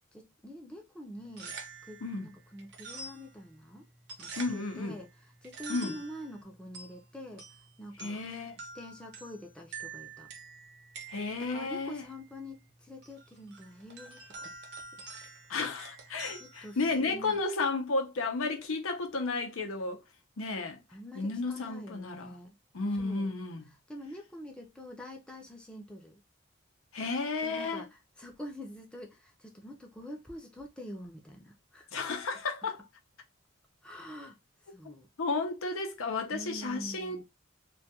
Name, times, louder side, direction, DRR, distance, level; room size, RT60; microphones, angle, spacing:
voice 1, 0.1-1.5 1.8-3.9 4.2-5.1 5.4-8.2 8.6-10.3 11.5-14.6 16.4-17.4 20.9-22.5 22.9-23.3 23.9-26.2 27.4-27.9 28.2-31.9 33.8-34.4 34.7-35.1 36.3-37.2, equal, 5° left, 0.4 m, -46 dB
sound 1, 1.2-17.4, right 4 dB, 55° right, 0.6 m, -48 dB
voice 2, 4.4-5.0 5.7-6.0 8.0-8.6 11.1-12.1 15.5-20.0 20.4-20.8 21.1-22.3 22.7-23.6 26.9-27.8 31.9-32.8 34.8-37.2, left 3 dB, 85° left, 0.6 m, -33 dB
2.3 x 2.2 x 2.7 m
head